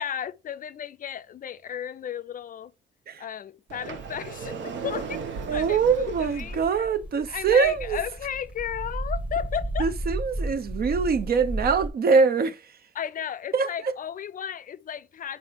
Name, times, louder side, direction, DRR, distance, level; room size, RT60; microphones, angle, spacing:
voice 1, 0.0-2.7 3.2-6.9 7.3-9.9 12.9-15.4, left 9 dB, 45° left, 0.4 m, -34 dB
Sliding door, 3.7-6.7, right 5 dB, 70° right, 1.0 m, -36 dB
sound 1, 5.0-11.9, right 1 dB, 5° right, 1.0 m, -34 dB
voice 2, 5.5-8.0 9.8-12.6 13.5-13.7, right 5 dB, 50° right, 0.7 m, -23 dB
4.8 x 4.2 x 5.0 m
cardioid pair, 90°, 20 cm